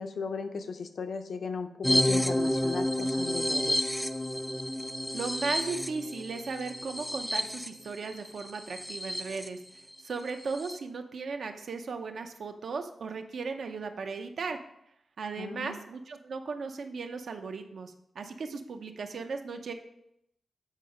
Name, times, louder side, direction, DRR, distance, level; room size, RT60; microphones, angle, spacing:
voice 1, 0.0-3.9 15.4-15.8, left 5 dB, 60° left, 7 dB, 0.6 m, -36 dB
sound 1, 1.8-9.5 9.9-10.0 10.3-10.8, left 1 dB, 5° left, 0.3 m, -30 dB
voice 2, 5.1-9.6 10.0-14.6 15.2-19.7, right 4 dB, 60° right, 6 dB, 0.7 m, -36 dB
8.2 x 4.7 x 5.0 m, 0.78 s
wide cardioid pair, 175°, 0 cm